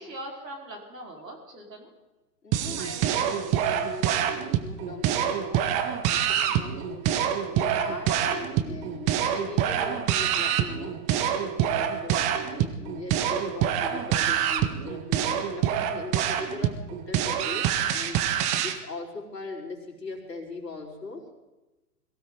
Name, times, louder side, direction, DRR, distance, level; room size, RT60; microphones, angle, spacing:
voice 1, 0.0-1.9 4.4-4.5 6.8-6.9 14.7-14.8, right 1 dB, 80° right, 0 dB, 4.5 m, -42 dB
voice 2, 2.4-5.8 6.0-7.0 7.5-11.0 11.4-16.8 17.1-18.3 18.6-21.2, left 3 dB, 80° left, -1 dB, 4.5 m, -40 dB
sound 1, 2.5-18.8, right 10 dB, 15° right, 0.5 m, -26 dB
22.0 x 16.0 x 3.8 m, 1.1 s
figure-of-eight pair, 120°, 48 cm